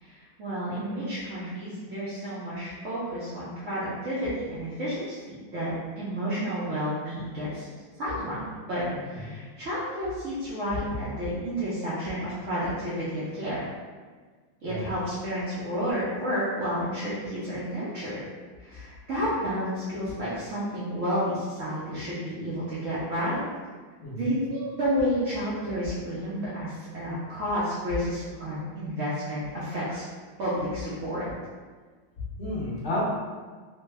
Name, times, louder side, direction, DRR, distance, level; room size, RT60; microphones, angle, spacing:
voice 1, 0.0-7.7 8.0-13.7 14.6-18.1 18.6-23.4 24.2-30.0 30.4-31.3, equal, 60° right, -11 dB, 0.8 m, -31 dB
voice 2, 8.9-9.4 14.6-14.9 24.0-24.2 32.4-33.0, left 1 dB, 40° left, -8 dB, 0.7 m, -32 dB
3.2 x 2.2 x 3.3 m, 1.5 s
omnidirectional pair, 2.0 m